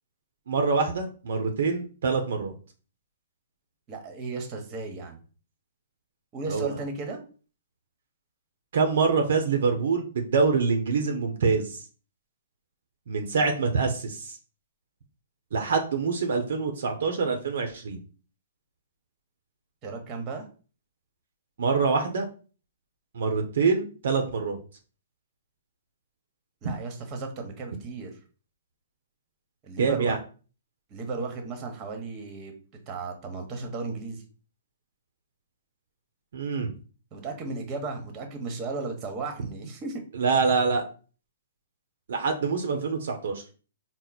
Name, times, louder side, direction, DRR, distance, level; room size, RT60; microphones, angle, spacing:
voice 1, 0.5-2.5 6.5-6.7 8.7-11.8 13.1-14.4 15.5-18.0 21.6-22.2 23.1-24.6 29.8-30.2 36.3-36.7 40.1-40.8 42.1-43.4, right 4 dB, 70° right, 4 dB, 0.7 m, -25 dB
voice 2, 3.9-5.2 6.3-7.2 19.8-20.4 26.6-28.2 29.6-30.2 30.9-32.5 32.9-34.2 37.1-40.0, right 3 dB, 30° right, 4 dB, 1.1 m, -35 dB
4.4 x 2.0 x 4.0 m, 0.37 s
hypercardioid pair, 130°, 0 cm